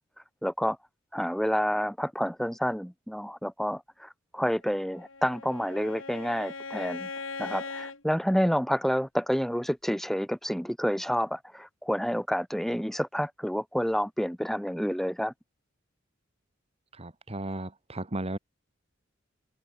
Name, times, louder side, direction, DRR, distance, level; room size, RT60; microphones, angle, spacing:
voice 1, 0.4-0.8 1.1-7.1 7.4-15.3, equal, ahead, 6.9 m, -29 dB
Bowed string instrument, 4.8-8.0, left 4 dB, 80° left, 4.6 m, -39 dB
voice 2, 16.9-18.4, right 1 dB, 30° right, 1.9 m, -35 dB
head